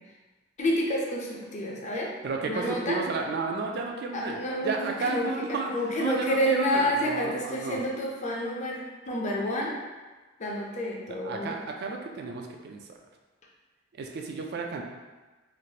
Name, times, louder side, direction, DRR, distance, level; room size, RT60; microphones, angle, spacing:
voice 1, 0.6-2.1 2.4-3.0 4.1-8.8 9.1-9.8 10.4-11.5, equal, 35° left, -2 dB, 0.5 m, -29 dB
voice 2, 2.2-5.7 6.0-7.8 11.2-12.8 14.0-14.8, right 4 dB, 55° right, 2 dB, 0.3 m, -32 dB
3.1 x 2.5 x 2.7 m, 1.2 s
head